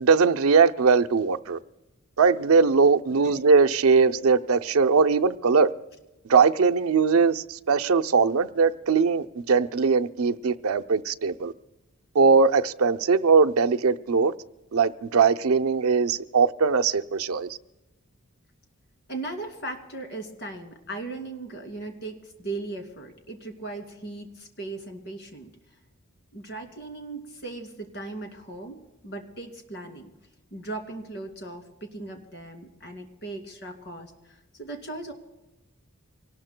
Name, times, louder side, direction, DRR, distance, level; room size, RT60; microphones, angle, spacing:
voice 1, 0.0-1.6 2.2-5.7 6.3-11.5 12.1-14.3 14.7-17.6, right 5 dB, 80° right, 0.6 m, -20 dB
voice 2, 19.1-25.5 26.3-30.1 30.5-35.1, right 2 dB, 50° left, 2.4 m, -38 dB
25.0 x 19.0 x 2.2 m
head